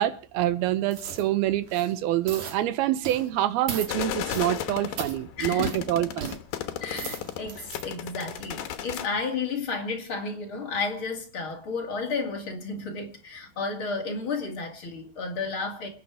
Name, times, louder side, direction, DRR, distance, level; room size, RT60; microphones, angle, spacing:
voice 1, 0.0-6.4, right 13 dB, 85° right, 2.9 m, -26 dB
sound 1, 0.9-1.3 1.6-1.9 2.3-2.6 3.0-3.3 3.7-3.9 4.3-4.6 5.0-5.2 5.6-5.8 6.2-6.4 6.8-7.8 8.3-8.4, right 6 dB, 55° right, 3.0 m, -37 dB
sound 2, 3.9-9.1, left 11 dB, 75° left, 2.9 m, -35 dB
voice 2, 5.4-5.7 6.8-15.9, left 4 dB, 40° left, 2.8 m, -32 dB
27.5 x 9.3 x 4.9 m
omnidirectional pair, 4.3 m